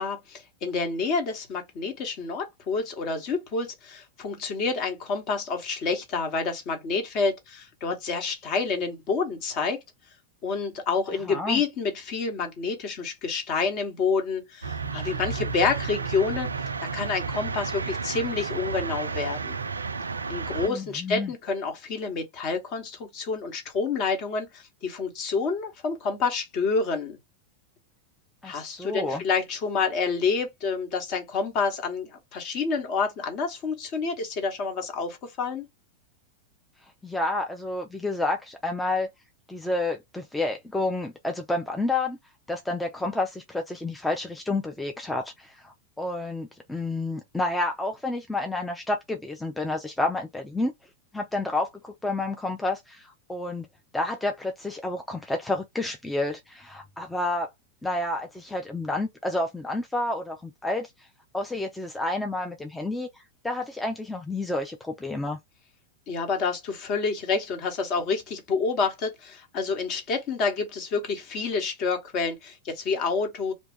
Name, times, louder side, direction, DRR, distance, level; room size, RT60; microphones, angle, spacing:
voice 1, 0.0-9.8 10.4-16.5 16.8-19.5 20.3-27.2 28.4-35.6 66.1-73.5, left 4 dB, 40° left, 1.1 m, -28 dB
voice 2, 11.3-11.6 20.6-21.3 28.4-29.2 37.0-39.1 39.5-42.2 42.5-50.7 51.1-53.7 53.9-57.5 57.8-61.1 61.3-65.4, left 2 dB, 5° left, 0.4 m, -30 dB
sound 1, 14.6-20.7, right 4 dB, 75° right, 0.3 m, -32 dB
2.7 x 2.3 x 3.6 m
figure-of-eight pair, 90°, 0 cm